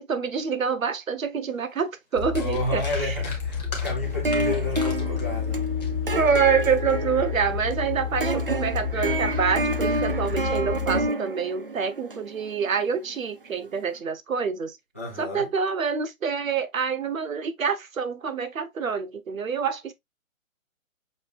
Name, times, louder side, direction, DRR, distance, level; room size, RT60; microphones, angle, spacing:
voice 1, 0.0-3.1 6.2-14.8 15.2-19.9, right 6 dB, 75° right, 1.2 m, -26 dB
sound 1, 1.7-1.8 2.1-6.8 7.3-7.5, left 4 dB, 30° left, 1.4 m, -40 dB
sound 2, 2.2-11.1, left 7 dB, 50° left, 1.2 m, -30 dB
voice 2, 2.4-5.7 14.9-15.5, left 1 dB, 10° left, 0.8 m, -31 dB
sound 3, 4.0-13.3, right 2 dB, 45° right, 0.4 m, -29 dB
6.5 x 3.1 x 2.4 m
hypercardioid pair, 180°, 41 cm